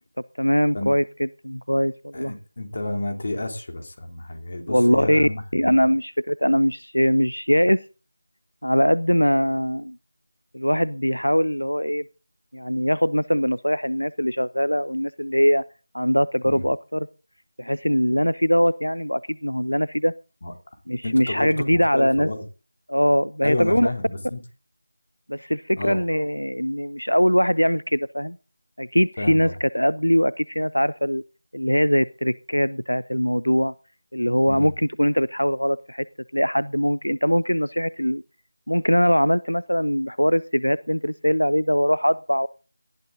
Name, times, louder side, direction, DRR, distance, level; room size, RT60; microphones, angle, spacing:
voice 1, 0.4-2.3 4.7-7.8 8.6-10.0 10.5-12.0 12.5-15.6 15.9-17.1 17.6-20.1 20.9-22.3 22.9-23.9 25.3-28.4 28.8-31.2 31.5-33.7 34.1-36.1 36.3-38.2 38.7-42.5, equal, 90° left, 19 dB, 0.6 m, -21 dB
voice 2, 2.1-5.8 16.4-16.6 20.4-20.5 21.0-22.4 23.4-24.4 25.8-26.0 29.2-29.6 34.5-34.7, left 2 dB, 45° left, 5 dB, 3.3 m, -30 dB
18.5 x 12.0 x 4.0 m, 0.36 s
figure-of-eight pair, 165°, 0 cm